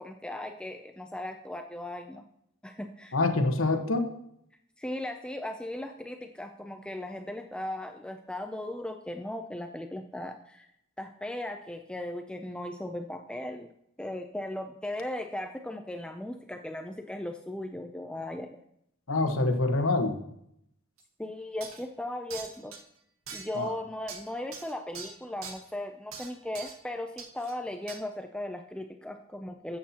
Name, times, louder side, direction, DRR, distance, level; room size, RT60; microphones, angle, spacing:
voice 1, 0.0-2.2 2.6-3.2 4.8-10.7 11.0-13.7 14.0-18.6 21.2-22.7 23.3-29.8, left 1 dB, 5° left, 5 dB, 0.4 m, -37 dB
voice 2, 3.1-4.1 19.1-20.2 23.6-23.7, left 2 dB, 70° left, 6 dB, 1.2 m, -26 dB
sound 1, 21.0-21.1 21.6-21.9 22.3-22.8 23.3-23.7 24.1-25.6 26.1-26.9 27.2-27.5 27.9-28.0, right 5 dB, 75° right, 1.3 m, -43 dB
12.5 x 8.5 x 2.9 m, 0.74 s
head